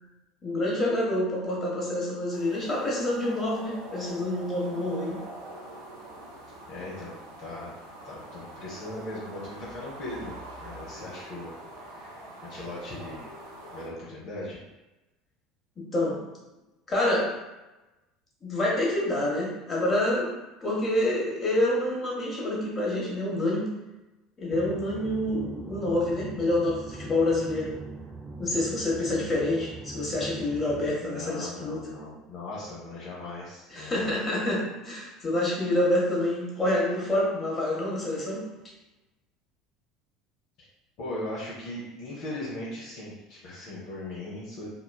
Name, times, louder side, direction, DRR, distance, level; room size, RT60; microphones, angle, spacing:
voice 1, 0.4-5.2 15.8-16.2 16.9-17.3 18.4-20.3 20.6-23.7 24.4-27.7 28.4-31.9 33.7-38.4, left 1 dB, 30° left, -4 dB, 1.1 m, -27 dB
sound 1, 2.3-13.9, right 1 dB, 85° right, 0.5 m, -44 dB
voice 2, 6.7-7.7 8.0-13.3 13.7-14.6 31.0-34.1 41.0-44.7, left 1 dB, 60° left, -6 dB, 0.7 m, -39 dB
sound 2, 24.5-31.0, right 3 dB, 10° right, 0.3 m, -41 dB
2.9 x 2.2 x 2.2 m, 1.0 s
hypercardioid pair, 70°, 0 cm